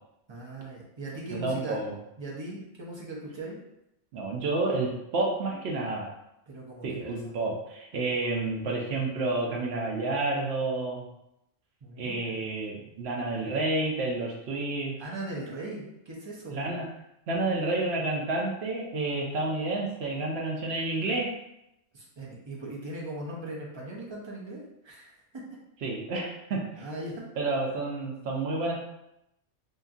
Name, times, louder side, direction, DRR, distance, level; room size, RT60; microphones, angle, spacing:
voice 1, 0.3-1.8 2.2-3.6 6.5-7.3 11.8-12.3 15.0-16.6 21.9-25.1 26.8-27.2, right 2 dB, 40° right, -5 dB, 0.4 m, -39 dB
voice 2, 1.3-1.9 4.1-6.1 6.8-11.1 12.0-14.9 16.5-16.8 17.3-21.3 25.8-26.8 27.4-28.8, right 2 dB, 65° right, -1 dB, 0.8 m, -30 dB
2.9 x 2.6 x 2.4 m, 0.85 s
omnidirectional pair, 1.3 m